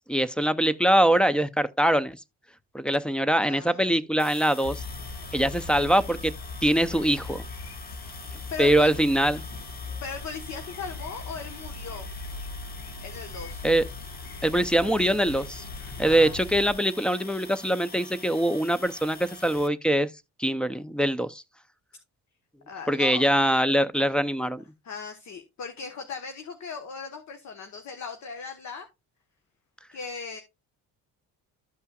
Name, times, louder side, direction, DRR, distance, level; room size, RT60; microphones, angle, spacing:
voice 1, 0.1-2.2 2.7-4.8 5.3-6.3 6.6-7.4 8.6-9.4 13.6-13.8 14.4-15.6 16.0-20.1 20.4-21.4 22.9-24.6, right 1 dB, 5° left, 0.6 m, -23 dB
voice 2, 3.4-3.8 8.5-8.9 10.0-12.1 13.0-13.6 16.1-16.4 22.7-23.3 24.8-28.9 29.9-30.4, left 5 dB, 50° left, 1.3 m, -38 dB
sound 1, 4.2-19.7, left 3 dB, 25° left, 1.2 m, -45 dB
sound 2, 4.6-16.7, left 3 dB, 75° left, 1.8 m, -39 dB
13.5 x 5.5 x 2.4 m
cardioid pair, 100°, 36 cm